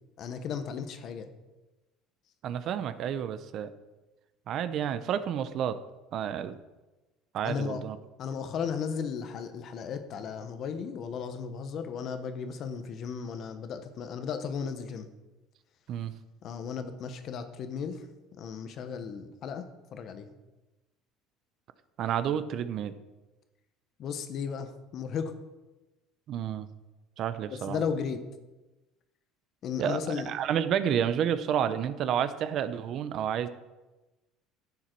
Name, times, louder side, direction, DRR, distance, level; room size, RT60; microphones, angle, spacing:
voice 1, 0.2-1.3 7.4-7.8 8.2-15.1 16.4-18.0 18.4-19.6 19.9-20.3 24.0-25.3 27.7-28.2 29.6-30.3, left 6 dB, 50° left, 9 dB, 1.0 m, -35 dB
voice 2, 2.4-3.7 4.5-5.8 6.1-6.5 7.3-8.0 15.9-16.1 22.0-22.9 26.3-26.7 27.2-27.8 29.8-30.0 30.3-33.5, right 9 dB, 50° right, 12 dB, 0.7 m, -30 dB
11.0 x 7.3 x 4.6 m, 1.1 s
cardioid pair, 120°, 0 cm